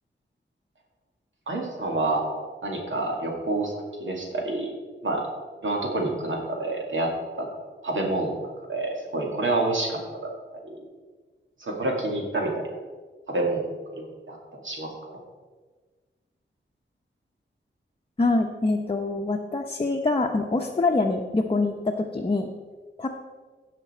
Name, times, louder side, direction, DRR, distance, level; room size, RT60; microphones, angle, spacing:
voice 1, 1.5-2.3 2.6-3.7 4.0-4.7 5.0-5.2 5.6-7.1 7.4-7.5 7.8-8.4 8.7-10.3 10.6-10.7 11.6-12.6 13.3-13.6 14.0-14.4 14.6-15.2, right 2 dB, 85° right, 0 dB, 2.3 m, -28 dB
voice 2, 18.2-22.5 23.0-23.1, left 3 dB, 30° left, 1 dB, 0.8 m, -25 dB
16.5 x 5.9 x 4.4 m, 1.4 s
wide cardioid pair, 90°, 20 cm